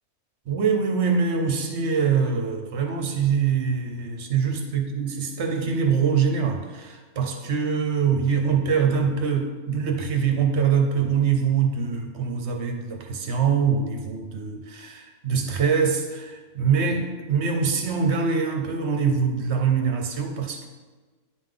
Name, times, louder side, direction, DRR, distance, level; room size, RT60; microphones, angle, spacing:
voice 1, 0.5-20.7, right 6 dB, 55° right, 3 dB, 0.9 m, -24 dB
9.6 x 3.6 x 3.8 m, 1.3 s
omnidirectional pair, 1.6 m